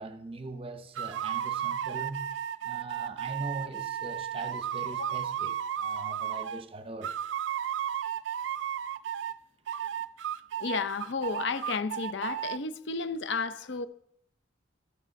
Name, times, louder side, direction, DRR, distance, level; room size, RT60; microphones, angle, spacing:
voice 1, 0.0-2.3 2.6-7.2, right 2 dB, 30° right, 0.7 m, -41 dB
sound 1, 0.9-6.6 7.0-9.4 9.7-12.6, right 10 dB, 70° right, 0.3 m, -34 dB
voice 2, 10.6-13.9, left 4 dB, 65° left, 0.6 m, -32 dB
12.5 x 5.0 x 6.3 m
head